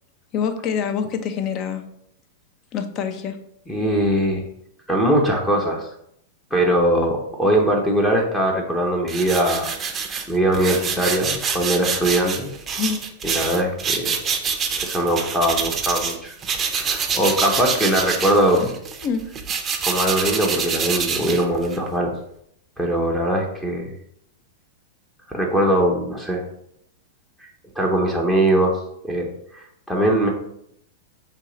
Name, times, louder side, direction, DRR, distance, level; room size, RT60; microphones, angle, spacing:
voice 1, 0.3-1.8 2.7-3.4 12.8-13.0 18.6-18.7 19.0-19.2, left 6 dB, 40° left, 8 dB, 0.6 m, -25 dB
voice 2, 3.7-4.4 4.9-5.9 6.5-9.7 10.3-12.5 13.2-14.2 14.8-16.4 16.8-18.6 19.8-22.1 22.8-23.9 25.3-26.4 27.4-27.5 27.8-28.8 29.0-30.3, right 1 dB, 10° left, 0 dB, 0.8 m, -21 dB
sound 1, 9.1-16.2 16.4-21.9, right 6 dB, 20° right, 0.5 m, -26 dB
4.5 x 2.8 x 4.0 m, 0.72 s
hypercardioid pair, 130°, 0 cm